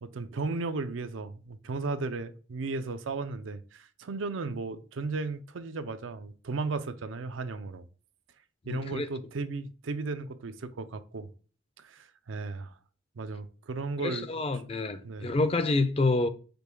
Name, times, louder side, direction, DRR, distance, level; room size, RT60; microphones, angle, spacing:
voice 1, 0.0-7.8 8.7-11.3 11.8-12.7 13.2-14.3 15.0-15.4, right 3 dB, 85° right, 0.5 m, -35 dB
voice 2, 8.7-9.1 14.0-16.3, left 2 dB, 30° left, 0.4 m, -28 dB
5.2 x 2.2 x 4.4 m
head